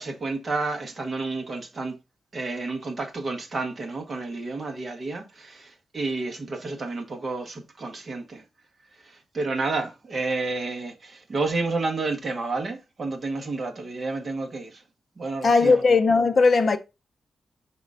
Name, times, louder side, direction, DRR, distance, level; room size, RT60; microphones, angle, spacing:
voice 1, 0.0-2.0 2.3-8.4 9.1-14.8 15.2-15.8, right 3 dB, 30° right, 1.2 m, -30 dB
voice 2, 15.4-16.8, left 4 dB, 35° left, 0.6 m, -18 dB
4.9 x 3.7 x 5.4 m
wide cardioid pair, 175°, 0 cm